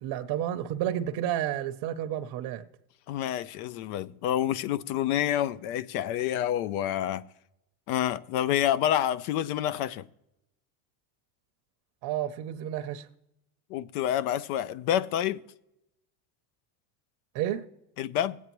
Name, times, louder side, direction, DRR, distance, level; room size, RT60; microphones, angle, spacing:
voice 1, 0.0-2.7 12.0-13.1 17.3-17.6, right 11 dB, 60° right, 0.7 m, -31 dB
voice 2, 3.1-7.2 7.9-10.0 13.7-15.4 18.0-18.4, left 11 dB, 85° left, 0.6 m, -28 dB
18.0 x 8.2 x 3.0 m
supercardioid pair, 110°, 43 cm